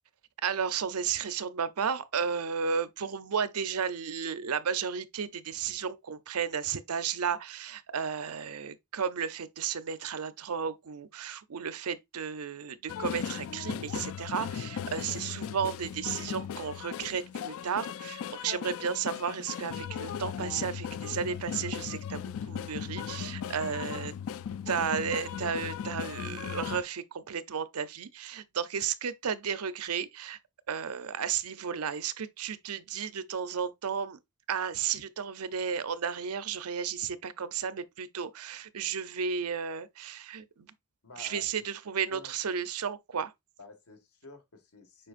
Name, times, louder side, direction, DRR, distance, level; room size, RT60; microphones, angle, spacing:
voice 1, 0.4-24.1 24.7-30.4 30.7-34.2 34.5-40.7 41.2-43.3, right 7 dB, 80° right, 0.6 m, -33 dB
sound 1, 12.9-26.8, left 8 dB, 65° left, 0.4 m, -37 dB
voice 2, 41.0-41.6 42.1-42.3 43.6-45.1, left 3 dB, 85° left, 1.9 m, -50 dB
7.6 x 4.9 x 2.5 m
head